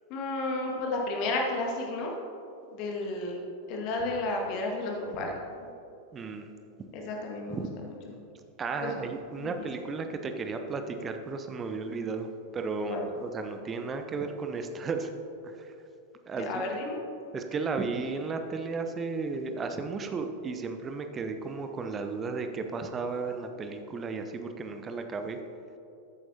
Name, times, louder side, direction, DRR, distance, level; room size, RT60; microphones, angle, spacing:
voice 1, 0.1-2.1 2.7-5.7 6.9-7.9 8.8-9.0 9.4-9.7 12.9-13.1 16.3-17.0, left 2 dB, 40° left, 0 dB, 1.9 m, -32 dB
voice 2, 6.1-6.5 7.5-7.7 8.6-15.1 15.4-15.7 16.3-16.5 17.3-25.4, right 4 dB, 20° right, 6 dB, 0.9 m, -34 dB
14.0 x 9.2 x 2.9 m, 2.7 s
figure-of-eight pair, 90°, 0 cm